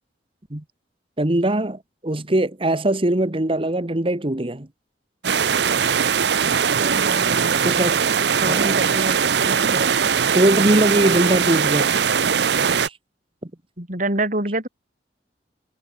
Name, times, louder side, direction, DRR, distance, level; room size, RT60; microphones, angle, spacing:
voice 1, 1.2-4.7 7.6-8.0 8.3-8.8 9.6-9.7 10.3-11.9 12.8-12.9 13.4-13.5, right 1 dB, 30° right, 1.4 m, -21 dB
sound 1, 5.2-12.9, right 7 dB, 70° right, 0.7 m, -20 dB
voice 2, 6.8-7.9 8.4-10.0 13.8-14.7, right 2 dB, 45° right, 7.5 m, -27 dB
head